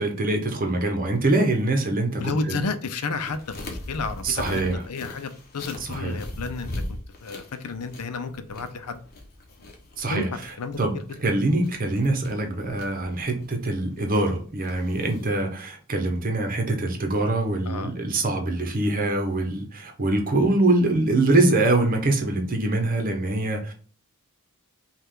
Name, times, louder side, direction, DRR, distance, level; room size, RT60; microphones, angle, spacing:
voice 1, 0.0-2.6 4.2-4.8 5.9-6.2 10.0-10.9 11.2-23.7, right 2 dB, 40° right, 0.9 m, -24 dB
voice 2, 2.2-9.0 10.1-10.2 10.6-11.0 17.7-17.9, left 4 dB, 90° left, 0.6 m, -32 dB
sound 1, 3.2-15.4, left 1 dB, 45° left, 1.0 m, -40 dB
5.5 x 2.4 x 3.7 m
head